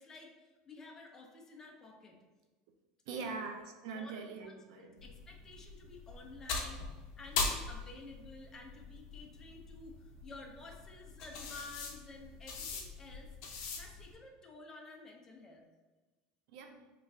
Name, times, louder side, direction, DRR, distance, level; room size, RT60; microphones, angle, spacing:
voice 1, 0.0-2.2 3.2-3.3 3.9-4.2 4.4-13.3 13.7-15.6, left 3 dB, 15° left, 1 dB, 0.4 m, -52 dB
voice 2, 3.1-5.0 16.5-16.9, right 4 dB, 75° right, 4 dB, 0.4 m, -43 dB
sound 1, 5.0-14.1, left 4 dB, 65° left, 0.6 m, -41 dB
3.1 x 2.4 x 3.4 m, 1.2 s
cardioid pair, 160°, 3 cm